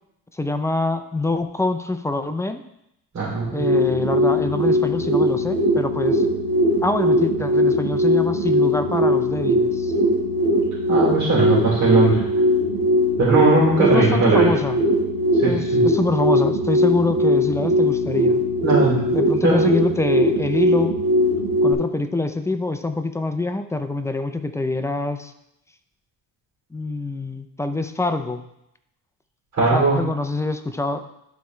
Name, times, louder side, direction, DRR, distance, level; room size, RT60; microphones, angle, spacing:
voice 1, 0.3-2.6 3.5-6.3 6.8-9.9 13.8-14.8 15.4-18.4 19.1-21.0 21.6-25.3 26.7-28.4 29.7-31.1, left 2 dB, 10° left, 8 dB, 0.4 m, -25 dB
voice 2, 3.1-3.8 10.9-12.2 13.2-14.5 15.4-15.8 18.6-19.0 19.4-19.6 29.5-30.0, right 3 dB, 45° right, -6 dB, 3.1 m, -19 dB
sound 1, 3.4-21.7, equal, 80° right, 1.6 m, -20 dB
11.5 x 4.5 x 3.1 m, 0.82 s
cardioid pair, 115°, 36 cm